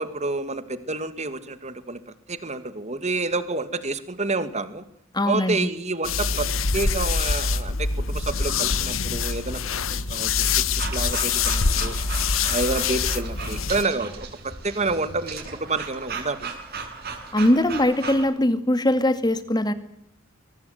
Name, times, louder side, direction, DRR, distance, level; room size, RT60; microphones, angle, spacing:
voice 1, 0.0-2.0 2.3-4.8 5.3-10.5 10.9-12.0 12.5-16.5, right 3 dB, 35° right, 12 dB, 2.2 m, -29 dB
voice 2, 5.1-5.7 17.3-19.7, left 1 dB, 20° left, 11 dB, 2.2 m, -21 dB
sound 1, 6.0-13.8, left 5 dB, 80° left, 1.2 m, -25 dB
sound 2, 10.8-18.3, right 5 dB, 50° right, 6.6 m, -36 dB
23.5 x 19.0 x 7.9 m, 0.73 s
head